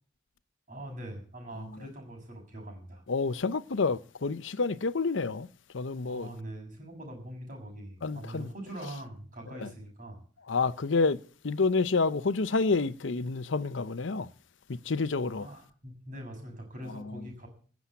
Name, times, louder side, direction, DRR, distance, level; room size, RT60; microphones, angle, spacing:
voice 1, 0.7-3.0 6.0-10.2 15.3-17.5, right 1 dB, 45° right, 6.4 m, -43 dB
voice 2, 3.1-5.5 5.7-6.3 8.0-8.5 9.6-9.7 10.5-11.2 11.4-14.3 14.7-15.5 16.9-17.2, left 4 dB, 75° left, 0.7 m, -29 dB
16.0 x 7.3 x 8.4 m
head